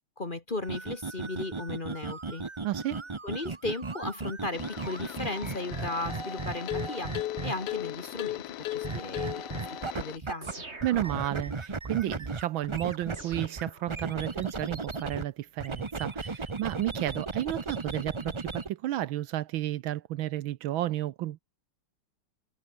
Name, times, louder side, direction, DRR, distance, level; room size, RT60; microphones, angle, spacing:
voice 1, 0.2-2.4 3.2-7.1 7.4-10.6, left 2 dB, 25° left, 1.5 m, -36 dB
sound 1, 0.6-7.8 8.8-10.5 10.8-15.2 15.6-18.7, right 3 dB, 45° right, 0.3 m, -36 dB
voice 2, 2.6-3.0 10.8-21.4, right 14 dB, 75° right, 1.4 m, -32 dB
sound 2, 4.5-10.2, left 14 dB, 70° left, 1.0 m, -37 dB
sound 3, 10.4-11.6 13.1-14.4, right 3 dB, 30° right, 3.6 m, -46 dB
omnidirectional pair, 2.3 m